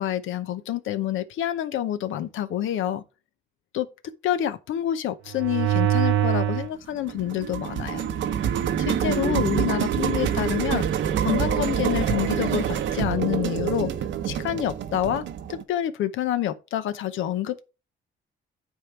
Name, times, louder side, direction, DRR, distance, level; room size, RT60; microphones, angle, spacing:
voice 1, 0.0-3.0 3.7-3.9 4.2-8.0 8.8-10.9 11.2-13.9 14.2-15.2 15.5-17.6, left 11 dB, 80° left, 0.8 m, -27 dB
sound 1, 5.3-6.7 7.1-15.6, right 9 dB, 70° right, 0.8 m, -25 dB
9.8 x 3.8 x 4.5 m
cardioid pair, 90°, 20 cm